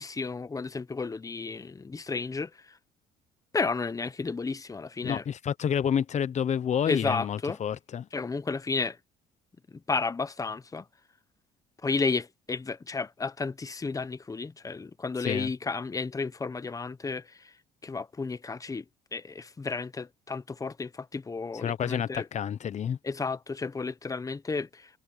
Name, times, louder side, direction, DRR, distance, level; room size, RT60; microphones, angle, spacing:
voice 1, 0.0-2.8 3.5-5.2 6.9-7.6 8.1-9.0 9.7-10.9 11.8-17.5 17.8-18.8 19.1-22.3 23.0-25.0, left 4 dB, 20° left, 1.0 m, -32 dB
voice 2, 5.0-8.1 15.2-15.5 21.5-23.0, left 8 dB, 45° left, 1.0 m, -29 dB
cardioid pair, 110°, 17 cm